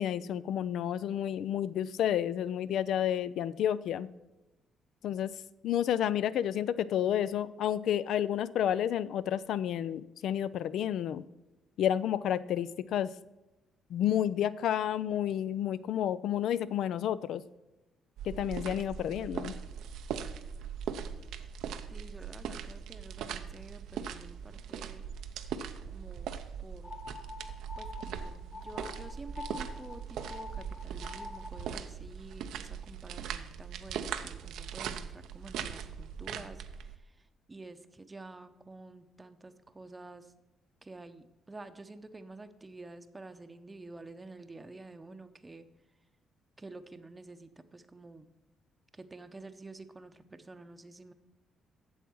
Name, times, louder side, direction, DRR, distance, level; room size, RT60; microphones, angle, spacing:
voice 1, 0.0-4.1 5.0-5.3 5.6-11.2 11.8-13.1 13.9-17.4 18.2-19.5, left 10 dB, 75° left, 17 dB, 0.4 m, -30 dB
sound 1, 18.2-37.0, right 8 dB, 85° right, 0.6 m, -40 dB
voice 2, 21.9-25.0 25.9-26.3 26.6-26.9 27.8-40.3 40.8-45.7 46.6-48.3 48.9-51.1, right 2 dB, 20° right, 9 dB, 0.7 m, -49 dB
sound 2, 26.8-31.7, left 3 dB, 35° left, 1.4 m, -46 dB
8.2 x 7.2 x 6.1 m, 1.0 s
cardioid pair, 90°, 0 cm